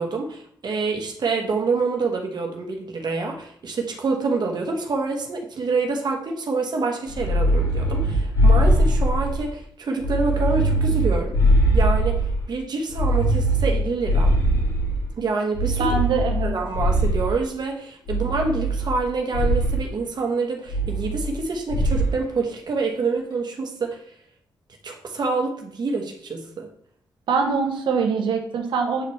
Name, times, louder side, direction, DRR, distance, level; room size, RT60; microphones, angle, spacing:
voice 1, 0.0-11.4 11.7-12.2 12.5-14.3 15.2-16.0 16.4-24.0 24.8-26.7, right 4 dB, 60° right, 2 dB, 1.2 m, -26 dB
sound 1, 7.1-9.5 10.0-12.4 12.9-15.1 15.5-17.4 18.1-19.0 19.3-19.8 20.7-21.4 21.7-22.2, right 1 dB, 65° left, 2.9 m, -21 dB
voice 2, 15.8-16.6 27.3-29.0, right 5 dB, 85° right, 3 dB, 0.8 m, -23 dB
7.7 x 4.3 x 3.1 m, 0.65 s
cardioid pair, 60°, 8 cm